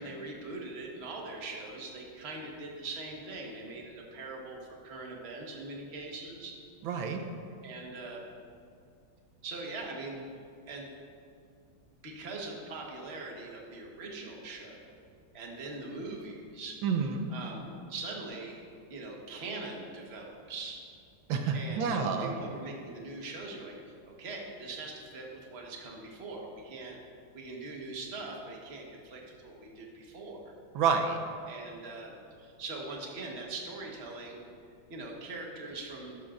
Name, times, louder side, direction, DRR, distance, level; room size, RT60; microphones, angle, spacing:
voice 1, 0.0-6.6 7.6-8.2 9.4-10.2 10.7-10.9 12.0-15.0 15.3-16.8 17.3-18.6 18.9-20.8 21.5-27.0 27.3-30.5 31.5-34.4 34.9-36.2, right 3 dB, 35° right, 0 dB, 1.4 m, -42 dB
voice 2, 6.8-7.3 16.8-17.3 21.3-22.3 30.7-31.2, right 6 dB, 80° right, 5 dB, 1.5 m, -29 dB
13.0 x 11.5 x 2.5 m, 2.3 s
omnidirectional pair, 2.2 m